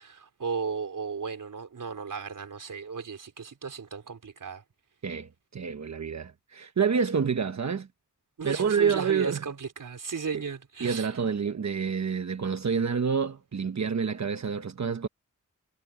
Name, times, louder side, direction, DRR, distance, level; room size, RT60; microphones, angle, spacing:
voice 1, 0.0-4.6 8.4-11.1, right 5 dB, 90° right, 4.2 m, -35 dB
voice 2, 5.0-7.9 8.4-9.4 10.3-10.4 10.8-15.1, right 6 dB, 60° right, 1.1 m, -28 dB
wide cardioid pair, 100°, 31 cm